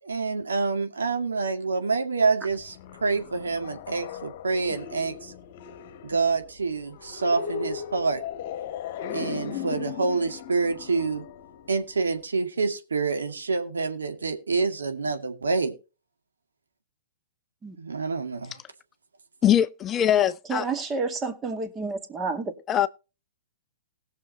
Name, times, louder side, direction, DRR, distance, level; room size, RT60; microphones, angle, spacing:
voice 1, 0.0-2.7 3.0-5.3 6.0-8.2 9.1-11.2 11.7-15.7 17.8-18.6, right 4 dB, 80° right, 2.2 m, -27 dB
sound 1, 2.5-12.2, left 8 dB, 50° left, 1.3 m, -38 dB
voice 2, 19.4-20.6 22.7-22.9, left 10 dB, 25° left, 0.5 m, -22 dB
voice 3, 20.5-22.5, right 4 dB, 20° right, 2.1 m, -30 dB
20.0 x 6.8 x 2.8 m
figure-of-eight pair, 115°, 0 cm